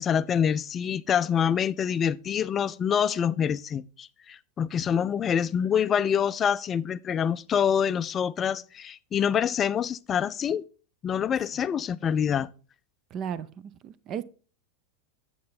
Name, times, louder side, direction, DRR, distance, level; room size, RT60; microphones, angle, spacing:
voice 1, 0.0-10.6 11.0-12.5, left 8 dB, 25° left, 0.4 m, -26 dB
voice 2, 13.1-13.5 13.8-14.2, right 8 dB, 35° right, 0.6 m, -33 dB
8.4 x 7.5 x 4.1 m
figure-of-eight pair, 90°, 0 cm